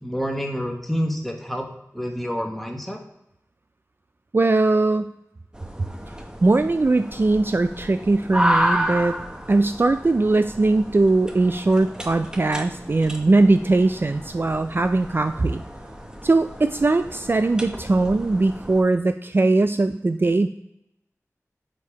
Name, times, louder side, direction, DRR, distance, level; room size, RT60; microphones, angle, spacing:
voice 1, 0.0-1.7 1.9-3.0, equal, 5° left, 2 dB, 1.1 m, -28 dB
voice 2, 4.3-5.1 6.4-9.2 9.5-15.6 16.2-20.5, right 2 dB, 40° right, 9 dB, 0.3 m, -20 dB
sound 1, 5.5-18.8, equal, 15° right, 0.9 m, -31 dB
5.2 x 4.5 x 4.8 m, 0.84 s
wide cardioid pair, 65°, 6 cm